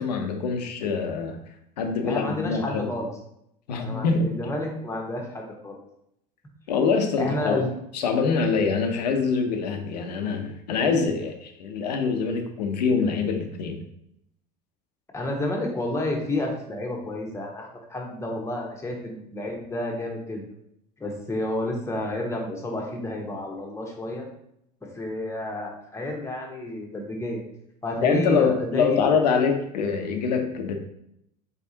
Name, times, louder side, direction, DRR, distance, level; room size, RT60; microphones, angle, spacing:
voice 1, 0.0-1.4 1.8-2.9 3.7-4.3 6.7-7.6 7.9-13.8 28.0-30.8, left 5 dB, 85° left, 5 dB, 0.7 m, -24 dB
voice 2, 2.1-3.1 3.8-5.8 7.2-7.7 15.1-20.4 21.0-24.3 24.9-27.4 27.8-29.0, left 1 dB, 15° left, 0 dB, 1.1 m, -30 dB
4.0 x 3.5 x 2.8 m, 0.76 s
hypercardioid pair, 85°, 21 cm